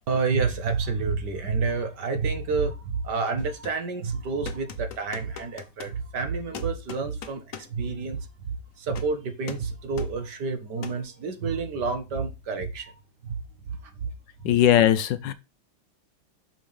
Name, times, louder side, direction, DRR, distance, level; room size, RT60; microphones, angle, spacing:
voice 1, 0.1-12.9 13.2-13.4 13.7-14.1 14.4-14.5, right 4 dB, 60° right, 1.9 m, -29 dB
sound 1, 3.4-3.9 4.5-6.0 6.5-7.8 8.9-9.2 9.5-9.7 10.0-10.1 10.8-11.1, left 7 dB, 55° left, 1.1 m, -41 dB
voice 2, 14.4-15.3, left 11 dB, 75° left, 1.3 m, -19 dB
6.3 x 5.2 x 5.3 m
omnidirectional pair, 2.1 m